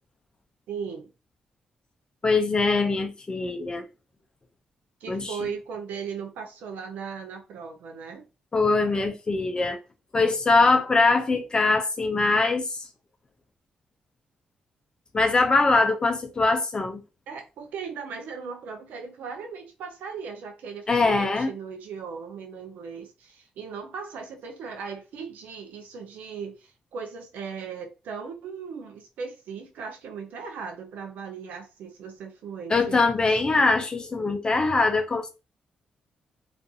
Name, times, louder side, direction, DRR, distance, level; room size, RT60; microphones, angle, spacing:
voice 1, 0.7-1.1 5.0-8.2 17.3-33.4, right 6 dB, 85° right, 0.5 m, -38 dB
voice 2, 2.2-3.8 5.1-5.3 8.5-9.8 10.1-12.6 15.1-17.0 20.9-21.5 32.7-35.3, left 3 dB, 30° left, 0.4 m, -22 dB
2.4 x 2.4 x 2.6 m
cardioid pair, 85°, 3 cm